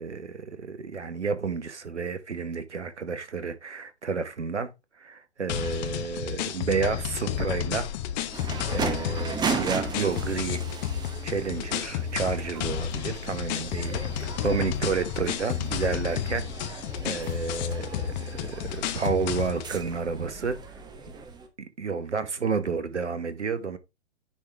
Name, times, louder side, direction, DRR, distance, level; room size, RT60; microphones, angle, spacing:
voice 1, 0.0-4.7 5.0-7.9 8.7-10.6 11.2-20.6 21.8-23.8, right 5 dB, 90° right, 1.1 m, -31 dB
sound 1, 5.5-19.7, left 10 dB, 40° left, 0.9 m, -32 dB
sound 2, 8.3-21.5, right 5 dB, 10° right, 0.8 m, -36 dB
9.8 x 3.6 x 3.3 m
figure-of-eight pair, 110°, 34 cm